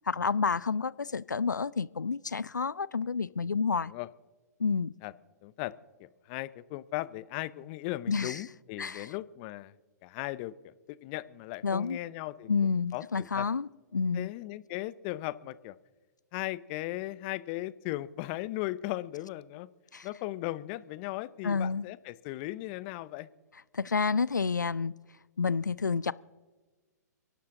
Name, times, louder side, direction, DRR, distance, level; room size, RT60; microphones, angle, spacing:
voice 1, 0.1-3.9 4.6-4.9 8.1-8.4 8.8-9.1 11.6-12.0 12.5-14.3 19.9-20.1 21.4-21.8 23.7-24.9 25.4-26.1, left 5 dB, 90° left, 0.4 m, -29 dB
voice 2, 5.4-5.7 6.0-9.7 10.0-12.5 12.9-13.5 14.1-15.8 16.3-19.7 20.0-23.3, left 17 dB, 35° left, 0.6 m, -37 dB
29.5 x 11.5 x 3.7 m
figure-of-eight pair, 120°, 10 cm